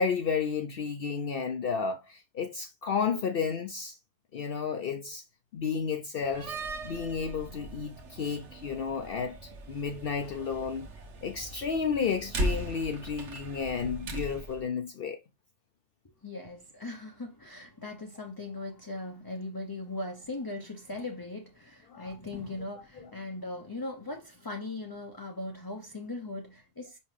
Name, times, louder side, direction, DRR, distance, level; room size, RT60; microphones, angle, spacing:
voice 1, 0.0-4.0 4.3-5.2 5.5-6.5 6.8-9.4 9.7-10.9 11.2-15.2 21.9-22.1, left 6 dB, 60° left, 0.8 m, -32 dB
Slam, 6.2-14.6, right 1 dB, 90° right, 1.4 m, -38 dB
voice 2, 16.0-27.0, left 2 dB, 25° left, 0.6 m, -39 dB
5.5 x 5.4 x 3.2 m
omnidirectional pair, 1.2 m